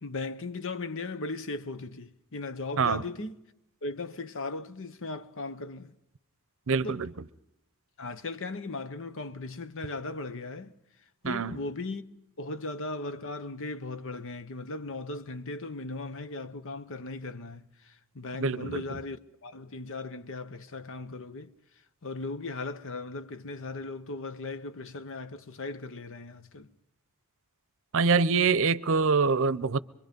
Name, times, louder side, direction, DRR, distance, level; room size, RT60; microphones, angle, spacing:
voice 1, 0.0-3.4 3.8-5.9 6.8-7.0 8.0-10.7 11.2-12.0 12.4-21.5 22.0-26.7, left 3 dB, 65° left, 1.0 m, -37 dB
voice 2, 6.7-7.1 11.2-11.6 18.4-18.8 27.9-29.8, right 5 dB, 65° right, 0.7 m, -25 dB
25.0 x 23.0 x 5.3 m
head